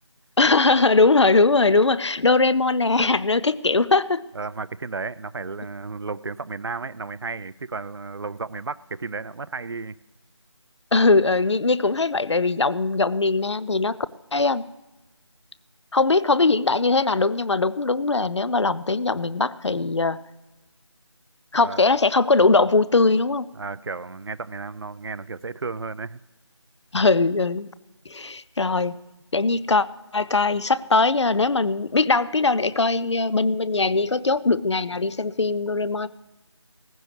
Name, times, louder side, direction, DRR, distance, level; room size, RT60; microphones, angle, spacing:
voice 1, 0.4-4.2 10.9-14.0 14.3-14.6 15.9-20.2 21.5-23.5 26.9-27.7 28.1-29.0 29.3-29.9 30.1-36.1, left 3 dB, 65° left, 17 dB, 0.5 m, -20 dB
voice 2, 4.3-10.0 21.5-21.8 23.5-26.2, right 4 dB, 55° right, 17 dB, 0.4 m, -33 dB
17.0 x 15.0 x 3.3 m, 1.1 s
figure-of-eight pair, 165°, 16 cm